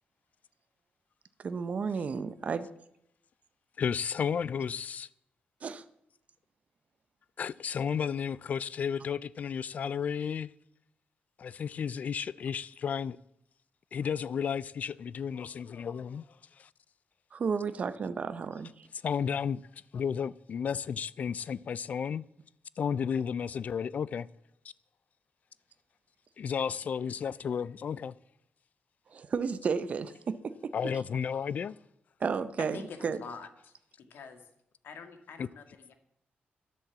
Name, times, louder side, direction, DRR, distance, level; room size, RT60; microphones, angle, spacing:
voice 1, 1.4-2.7 5.6-5.8 17.3-18.9 29.1-30.7 32.2-33.2, right 5 dB, 40° right, 0.7 m, -33 dB
voice 2, 3.8-5.1 7.4-10.5 11.4-13.2 13.9-16.3 16.6-16.7 19.0-19.6 19.9-22.3 22.8-24.3 26.4-28.1 30.7-31.8 35.4-35.5, left 7 dB, 45° left, 0.4 m, -33 dB
voice 3, 32.6-34.4 34.8-35.9, left 5 dB, 80° left, 2.0 m, -46 dB
11.5 x 11.0 x 7.2 m
wide cardioid pair, 170°, 4 cm